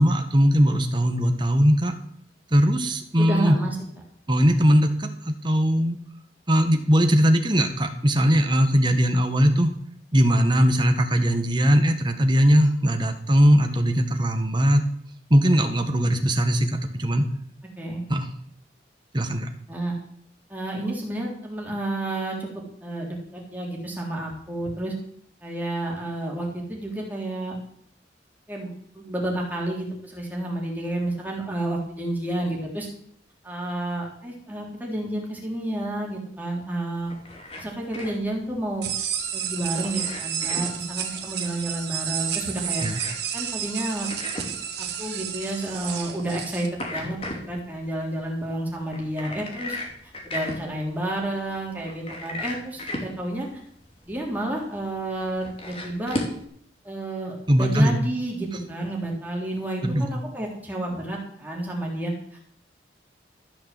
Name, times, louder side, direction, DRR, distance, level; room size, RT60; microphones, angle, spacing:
voice 1, 0.0-1.9 2.5-3.6 4.3-5.9 6.5-9.7 10.1-14.8 15.3-17.2 18.1-18.2 19.1-19.5 42.8-43.0 57.5-58.0 59.8-60.1, equal, 25° right, 5 dB, 1.5 m, -20 dB
voice 2, 3.2-3.8 17.8-18.0 19.7-20.0 20.5-22.5 22.8-24.9 25.4-27.6 28.5-28.7 28.9-32.9 33.4-37.1 37.6-38.9 39.3-42.8 43.3-44.1 44.8-47.2 47.5-49.8 50.2-53.6 54.0-56.2 56.8-62.1, right 1 dB, 10° right, -2 dB, 3.7 m, -30 dB
sound 1, 36.9-56.4, left 1 dB, 35° left, 2.9 m, -38 dB
sound 2, 38.8-46.7, right 9 dB, 70° right, 2.0 m, -31 dB
14.0 x 6.8 x 7.7 m, 0.64 s
head